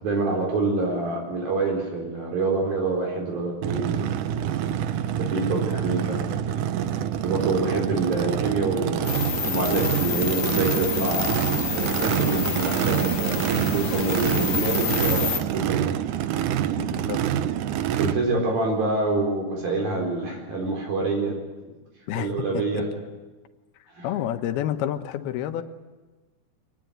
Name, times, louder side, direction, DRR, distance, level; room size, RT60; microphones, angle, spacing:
voice 1, 0.0-4.2 5.2-6.2 7.2-11.4 11.7-15.9 17.4-17.5 18.0-21.3 22.2-22.8 23.9-24.1, right 3 dB, 55° right, 0 dB, 5.9 m, -26 dB
Race car auto racing / Idling / Accelerating revving vroom, 3.6-18.1, right 10 dB, 80° right, 1.8 m, -26 dB
voice 2, 5.2-5.6 16.8-17.2 22.1-22.8 23.8-25.6, left 11 dB, 70° left, 8 dB, 3.0 m, -30 dB
sound 1, 9.0-15.4, left 6 dB, 45° left, 1.5 m, -28 dB
25.5 x 20.0 x 9.2 m, 1.2 s
omnidirectional pair, 4.9 m